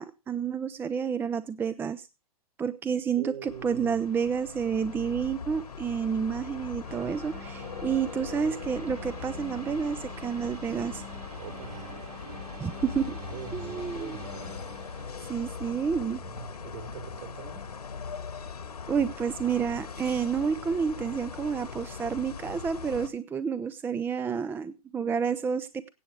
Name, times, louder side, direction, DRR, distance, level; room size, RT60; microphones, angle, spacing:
voice 1, 0.0-2.1 2.6-11.0 12.6-13.2 13.5-14.2 15.3-16.2 18.9-25.9, right 6 dB, 10° right, 0.5 m, -30 dB
voice 2, 3.1-4.0 5.1-5.2 11.4-12.3 13.1-14.7 16.2-17.8, right 8 dB, 55° right, 3.5 m, -43 dB
sound 1, 3.4-23.1, left 6 dB, 75° left, 1.8 m, -40 dB
sound 2, 6.8-16.8, right 3 dB, 75° right, 5.7 m, -47 dB
17.0 x 8.2 x 4.7 m
figure-of-eight pair, 115°, 20 cm